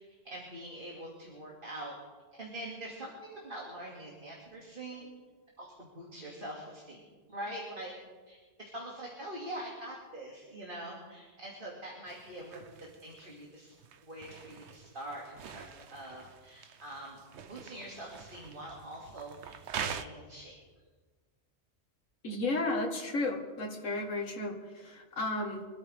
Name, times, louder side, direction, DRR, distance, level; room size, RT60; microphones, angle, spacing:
voice 1, 0.2-1.9 2.3-5.1 5.6-7.9 8.3-12.7 13.0-13.7 14.0-17.2 17.5-20.6, right 1 dB, 45° right, -4 dB, 2.6 m, -44 dB
sound 1, 12.1-20.0, right 7 dB, 65° right, 1.0 m, -45 dB
voice 2, 22.2-25.7, left 2 dB, 90° left, 1 dB, 2.0 m, -33 dB
25.5 x 13.0 x 3.5 m, 1.4 s
omnidirectional pair, 1.3 m